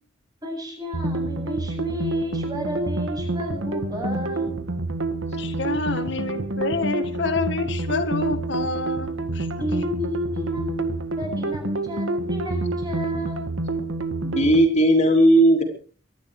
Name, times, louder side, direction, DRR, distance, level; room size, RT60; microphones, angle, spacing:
voice 1, 0.4-4.6 9.6-13.4, equal, 20° right, 1 dB, 8.0 m, -32 dB
sound 1, 0.9-14.7, right 2 dB, 85° right, 1.9 m, -28 dB
voice 2, 5.3-9.5, left 3 dB, 65° left, 7 dB, 1.7 m, -28 dB
voice 3, 14.2-15.6, right 1 dB, 35° left, 2 dB, 3.4 m, -16 dB
24.0 x 11.5 x 4.9 m, 0.41 s
head